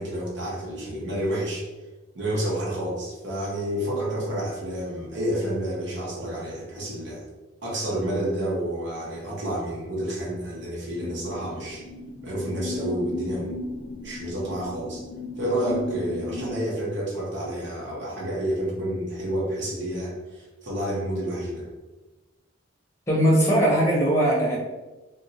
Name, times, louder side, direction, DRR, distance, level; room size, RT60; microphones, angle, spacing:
voice 1, 0.0-1.7 2.1-7.2 7.6-11.8 12.2-13.6 14.0-15.0 15.4-21.7, right 1 dB, 65° right, -5 dB, 0.9 m, -29 dB
sound 1, 11.0-16.6, left 2 dB, 75° left, 0.4 m, -36 dB
voice 2, 23.1-24.6, equal, 15° left, -4 dB, 0.9 m, -20 dB
2.6 x 2.3 x 4.0 m, 1.1 s
head